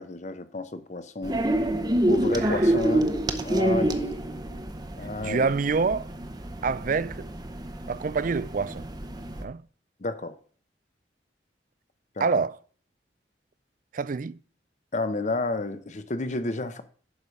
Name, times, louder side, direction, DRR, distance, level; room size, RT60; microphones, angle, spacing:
voice 1, 0.0-1.4 2.1-3.1 3.4-4.0 5.0-5.5 10.0-10.4 12.2-12.3 14.9-16.8, left 2 dB, 40° left, 0.9 m, -31 dB
sound 1, 1.2-9.4, right 1 dB, 25° right, 0.7 m, -27 dB
voice 2, 2.3-2.7 5.2-6.1 6.6-7.3 7.9-8.9 9.4-9.6 12.2-12.6 13.9-14.4, right 4 dB, 45° right, 0.4 m, -26 dB
11.0 x 4.9 x 5.3 m
head